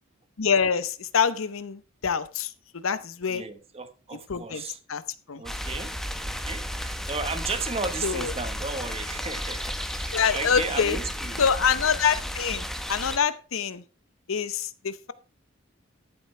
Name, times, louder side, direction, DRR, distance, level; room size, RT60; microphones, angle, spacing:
voice 1, 0.4-3.4 4.3-4.6 4.9-5.0 5.3-5.4 8.0-8.3 10.1-11.0 11.4-13.8 14.3-15.1, left 6 dB, 85° left, 0.8 m, -26 dB
voice 2, 3.3-4.8 5.4-11.4, right 4 dB, 30° right, 1.2 m, -35 dB
sound 1, 5.4-13.2, equal, ahead, 0.9 m, -33 dB
13.5 x 7.7 x 3.3 m
head